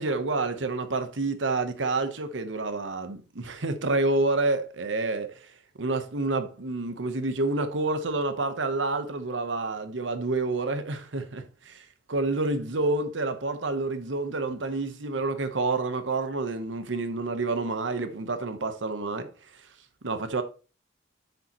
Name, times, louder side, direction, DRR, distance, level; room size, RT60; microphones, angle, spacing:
voice 1, 0.0-19.7 20.0-20.4, right 3 dB, 75° right, 1.0 m, -29 dB
8.0 x 6.9 x 3.0 m
head